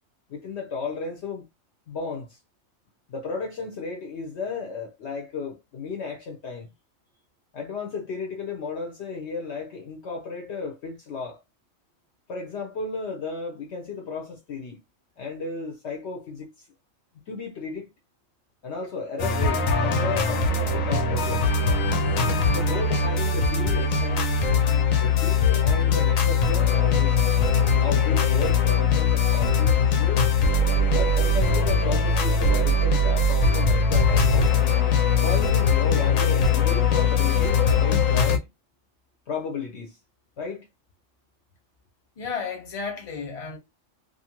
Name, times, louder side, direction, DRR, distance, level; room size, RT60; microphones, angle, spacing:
voice 1, 0.3-1.5 1.9-2.4 3.1-6.7 7.5-11.4 12.3-14.8 15.2-16.7 17.1-17.9 18.6-21.5 22.5-24.3 25.0-27.3 27.8-30.3 30.9-34.5 35.2-38.5 39.3-40.0 40.4-40.7, left 4 dB, 60° left, 0.8 m, -34 dB
sound 1, 19.2-38.4, left 4 dB, 85° left, 1.1 m, -21 dB
voice 2, 42.2-43.6, left 5 dB, 30° left, 0.8 m, -33 dB
2.6 x 2.4 x 2.9 m
omnidirectional pair, 1.4 m